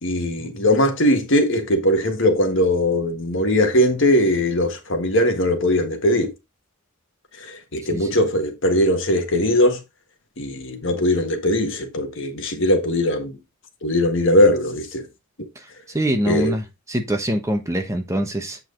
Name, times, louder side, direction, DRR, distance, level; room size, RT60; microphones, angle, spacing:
voice 1, 0.0-6.3 7.4-9.8 10.4-13.4 13.8-15.0 16.3-16.5, left 1 dB, 55° left, 1.6 m, -20 dB
voice 2, 15.9-18.6, equal, 15° right, 1.1 m, -24 dB
8.3 x 4.8 x 3.8 m
head